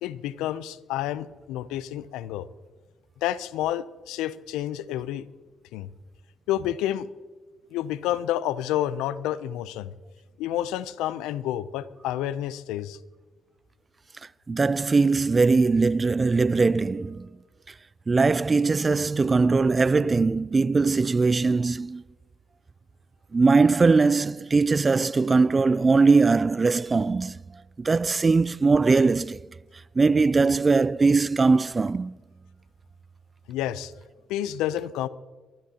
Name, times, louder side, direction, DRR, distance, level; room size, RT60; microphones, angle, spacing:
voice 1, 0.0-2.5 3.2-5.3 5.7-5.9 6.5-7.1 7.7-9.9 10.4-13.0 33.5-33.9 34.3-35.1, left 12 dB, 85° left, 0.5 m, -29 dB
voice 2, 14.5-17.3 18.1-22.0 23.3-27.4 27.8-29.4 30.0-32.1, right 4 dB, 35° right, 0.3 m, -21 dB
23.5 x 13.5 x 2.9 m
supercardioid pair, 55°, 0 cm